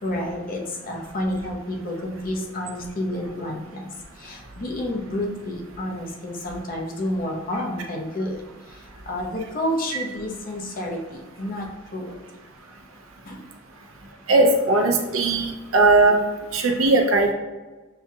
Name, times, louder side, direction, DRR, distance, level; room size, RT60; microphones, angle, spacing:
voice 1, 0.0-8.4 8.7-12.2 13.2-13.5, left 1 dB, 45° left, 0 dB, 0.7 m, -30 dB
voice 2, 14.3-16.2 16.5-17.3, right 2 dB, 80° right, 2 dB, 0.7 m, -18 dB
6.6 x 2.4 x 2.7 m, 1.3 s
head